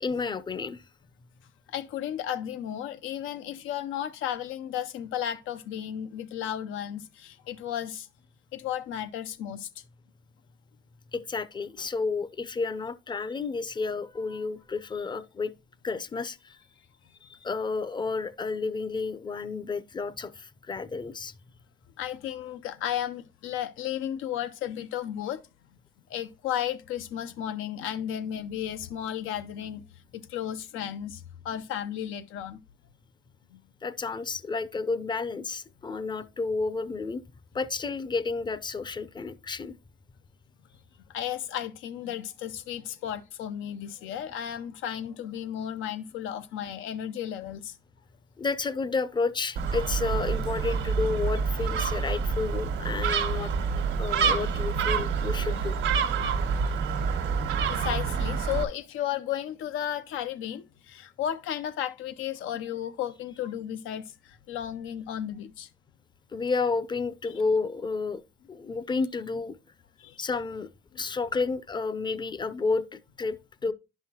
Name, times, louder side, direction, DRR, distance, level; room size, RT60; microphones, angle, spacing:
voice 1, 0.0-0.9 11.1-15.5 15.8-16.6 17.2-21.4 33.8-37.2 37.5-39.8 48.4-53.5 54.0-55.8 57.6-57.7 66.3-68.2 68.5-69.6 70.2-73.7, left 4 dB, 25° left, 0.5 m, -31 dB
voice 2, 1.7-8.1 8.5-9.7 22.0-25.4 26.1-29.8 30.1-32.6 33.5-33.6 41.1-47.7 57.7-65.7 70.0-70.2 70.9-71.0, left 10 dB, 90° left, 0.7 m, -34 dB
Gull seagull, 49.6-58.6, right 5 dB, 85° right, 1.3 m, -27 dB
10.5 x 5.7 x 2.8 m
cardioid pair, 90°, 20 cm